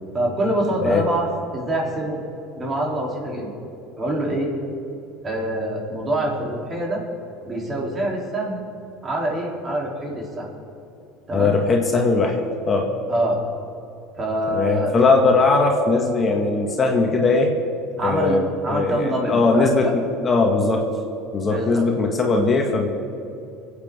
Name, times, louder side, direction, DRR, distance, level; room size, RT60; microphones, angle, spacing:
voice 1, 0.1-1.3 1.5-2.2 2.6-3.5 4.0-4.5 5.2-7.0 7.5-8.6 9.0-10.5 11.3-11.5 13.1-13.4 14.2-14.9 18.0-18.4 18.6-19.9 21.4-21.8, right 1 dB, 30° right, -2 dB, 3.5 m, -25 dB
voice 2, 11.3-12.4 12.7-12.9 14.5-17.5 18.0-20.9 21.3-22.9, left 3 dB, 30° left, 1 dB, 1.8 m, -19 dB
24.5 x 8.5 x 3.8 m, 2.8 s
hypercardioid pair, 85°, 0 cm